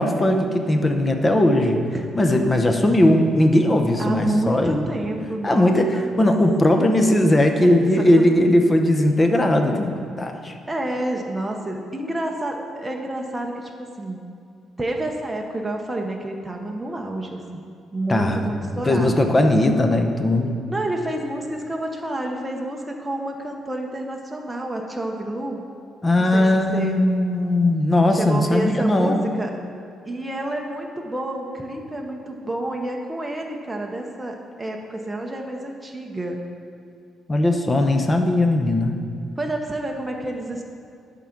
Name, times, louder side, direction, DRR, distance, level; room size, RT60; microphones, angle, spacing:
voice 1, 0.0-1.8 2.1-4.8 5.4-10.5 18.1-20.6 26.0-29.3 37.3-39.0, left 1 dB, 20° left, 5 dB, 0.7 m, -19 dB
voice 2, 4.0-6.0 7.4-8.2 10.7-14.3 14.8-19.1 20.7-25.7 26.3-26.5 26.7-26.9 28.2-29.5 30.0-36.4 39.4-40.6, right 1 dB, 10° right, 1 dB, 0.7 m, -29 dB
10.5 x 3.8 x 5.9 m, 2.3 s
cardioid pair, 110°, 0 cm